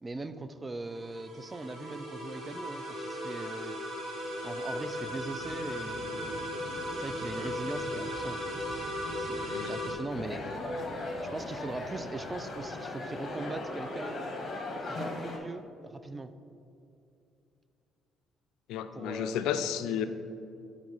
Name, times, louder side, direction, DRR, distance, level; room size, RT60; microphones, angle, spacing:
voice 1, 0.0-3.8 4.4-6.5 6.9-8.6 9.2-10.5 11.2-14.2 14.9-16.3 18.9-19.7, right 2 dB, 25° right, 11 dB, 0.3 m, -40 dB
sound 1, 0.8-9.9, equal, 55° right, 1.5 m, -37 dB
Livestock farm animals working animals, 4.2-13.2, left 1 dB, 15° left, 1.4 m, -48 dB
sound 2, 10.1-15.4, left 2 dB, 40° left, 1.0 m, -38 dB
voice 2, 18.7-20.0, left 9 dB, 80° left, 10 dB, 0.3 m, -32 dB
8.2 x 3.6 x 4.0 m, 2.6 s
supercardioid pair, 75°, 0 cm